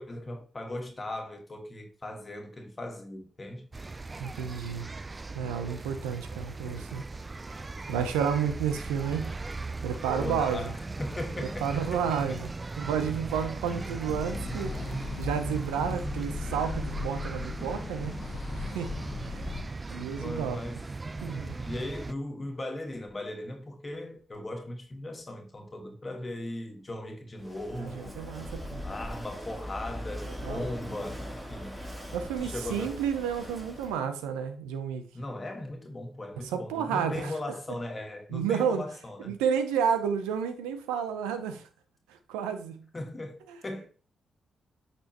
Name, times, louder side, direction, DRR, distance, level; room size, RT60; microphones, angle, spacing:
voice 1, 0.0-3.7 10.1-12.4 13.6-13.9 17.4-17.9 20.2-20.8 21.6-28.3 28.8-31.8 32.4-33.0 35.1-39.4 42.9-43.9, left 1 dB, 35° left, 1.6 m, -38 dB
sound 1, 3.7-22.1, right 3 dB, 30° right, 0.5 m, -38 dB
voice 2, 4.2-4.9 5.3-7.0 7.9-9.3 9.8-10.7 11.6-12.5 12.8-18.2 18.5-19.0 19.2-19.4 19.9-20.6 21.2-21.6 27.7-28.8 30.4-30.7 32.1-35.1 36.5-37.3 38.3-38.8 39.2-41.7 42.1-42.8 43.5-43.6, right 7 dB, 90° right, 0.7 m, -31 dB
sound 2, 14.1-19.6, left 4 dB, 60° left, 0.9 m, -37 dB
Walk footsteps / Wind / Waves surf, 27.4-34.0, equal, 15° right, 3.0 m, -40 dB
8.4 x 4.3 x 3.0 m
hypercardioid pair, 45°, 0 cm